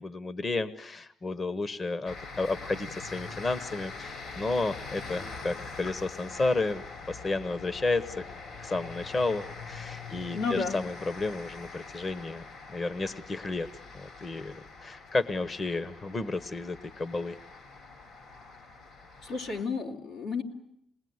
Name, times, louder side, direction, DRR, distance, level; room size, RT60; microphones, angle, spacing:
voice 1, 0.0-8.2 8.6-13.7 13.9-17.4, left 3 dB, 35° left, 14 dB, 1.0 m, -32 dB
sound 1, 2.1-19.7, left 4 dB, 65° left, 4.7 m, -44 dB
voice 2, 10.3-10.8 19.2-20.4, left 4 dB, 90° left, 0 dB, 3.0 m, -32 dB
27.0 x 20.5 x 9.5 m, 0.77 s
cardioid pair, 90°, 0 cm